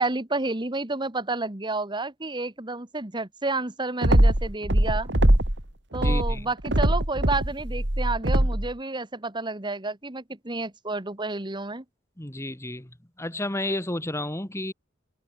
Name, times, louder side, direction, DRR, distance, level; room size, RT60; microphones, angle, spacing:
voice 1, 0.0-5.1 5.9-11.8, right 3 dB, 25° right, 1.8 m, -30 dB
sound 1, 4.0-5.6 5.9-8.7, right 1 dB, 70° right, 3.1 m, -21 dB
voice 2, 6.0-6.5 12.2-12.9 13.2-14.7, left 1 dB, 15° left, 1.8 m, -31 dB
head